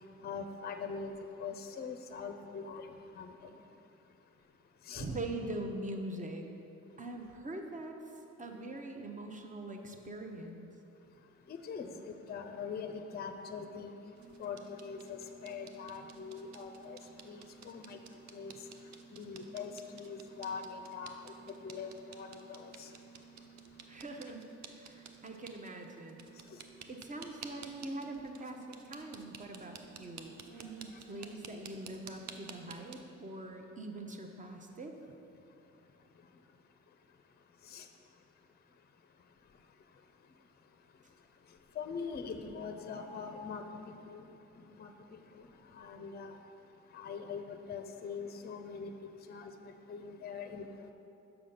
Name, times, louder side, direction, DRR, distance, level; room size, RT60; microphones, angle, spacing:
voice 1, 0.2-1.1 1.4-2.9 3.1-3.5 4.9-5.1 11.5-13.9 14.4-17.0 17.2-18.0 18.3-18.5 19.1-21.3 21.6-22.9 37.7-37.9 41.8-44.3 44.7-44.9 45.3-45.5 45.7-46.4 46.9-48.9 49.3-50.7, left 5 dB, 35° left, 7 dB, 0.5 m, -42 dB
voice 2, 5.0-6.5 7.0-8.0 8.4-10.7 23.9-26.2 26.9-34.9, right 2 dB, 25° right, 3 dB, 0.9 m, -43 dB
sound 1, 14.2-32.9, right 6 dB, 65° right, 0.6 m, -53 dB
7.0 x 5.0 x 5.7 m, 2.8 s
cardioid pair, 90°, 30 cm